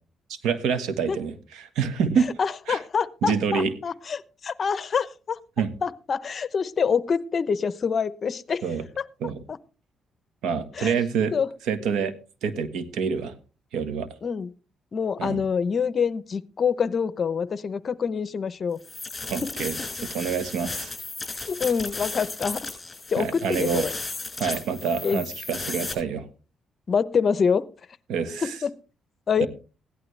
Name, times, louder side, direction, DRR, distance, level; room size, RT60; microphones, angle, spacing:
voice 1, 0.4-2.3 2.7-2.8 3.2-3.7 5.6-5.7 8.6-8.8 9.2-9.4 10.4-11.3 11.7-12.1 12.4-13.3 13.7-14.1 15.2-15.4 19.3-19.7 20.1-20.9 23.2-23.9 24.4-26.3 28.1-28.5 29.4-29.5, right 6 dB, 85° right, 10 dB, 1.5 m, -26 dB
voice 2, 2.4-5.4 5.8-8.6 9.0-9.1 9.5-9.6 10.7-10.9 11.3-11.5 14.2-14.5 14.9-18.8 19.4-19.5 19.8-20.1 21.5-22.7 23.1-23.9 25.0-25.2 26.9-27.6 28.4-28.7 29.3-29.5, left 6 dB, 45° left, 16 dB, 0.8 m, -26 dB
sound 1, 18.8-25.9, left 3 dB, 20° left, 6.3 m, -35 dB
16.0 x 11.5 x 3.3 m, 0.35 s
cardioid pair, 90°, 0 cm